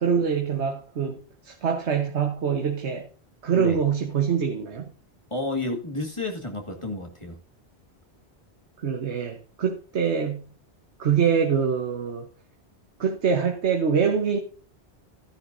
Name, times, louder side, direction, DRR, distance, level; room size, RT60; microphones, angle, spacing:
voice 1, 0.0-3.1 3.4-4.9 8.8-10.5 11.0-12.3 13.0-14.4, right 6 dB, 85° right, 1.5 m, -24 dB
voice 2, 5.3-7.4, left 2 dB, 25° left, 2.0 m, -31 dB
14.5 x 9.9 x 2.7 m
omnidirectional pair, 1.1 m